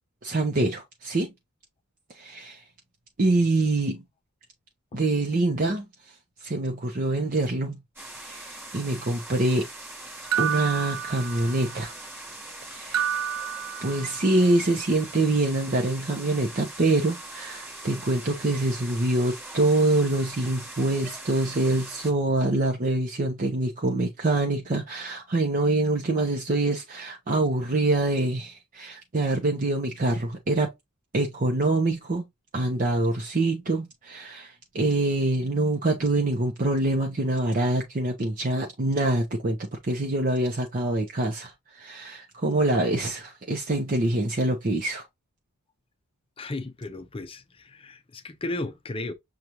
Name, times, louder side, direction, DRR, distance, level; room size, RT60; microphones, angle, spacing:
voice 1, 0.2-1.3 2.1-2.6 3.2-4.0 4.9-5.8 6.4-7.8 8.2-9.7 10.4-11.9 12.7-13.0 13.8-30.7 31.1-32.3 32.5-39.6 39.8-45.0, right 2 dB, 40° right, 0.7 m, -25 dB
sound 1, 8.0-22.1, right 1 dB, 10° right, 1.3 m, -42 dB
sound 2, 10.3-11.8 12.9-14.4, right 8 dB, 70° right, 0.4 m, -30 dB
voice 2, 46.4-49.1, left 2 dB, 25° left, 0.6 m, -34 dB
6.5 x 2.4 x 2.9 m
head